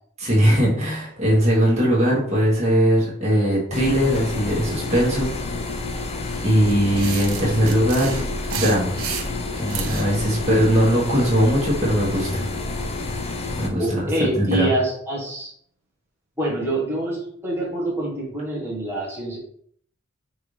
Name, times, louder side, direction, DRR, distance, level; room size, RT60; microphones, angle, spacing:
voice 1, 0.2-5.3 6.4-8.2 8.5-8.9 9.5-12.4 13.6-14.0 14.3-14.7, equal, 30° right, -5 dB, 1.5 m, -20 dB
sound 1, 3.7-13.7, left 2 dB, 30° left, 0.5 m, -29 dB
sound 2, 6.7-10.1, right 7 dB, 85° right, 0.6 m, -32 dB
voice 2, 13.8-15.5 16.4-19.4, right 1 dB, 10° right, -5 dB, 1.2 m, -25 dB
5.3 x 2.7 x 3.3 m, 0.62 s
head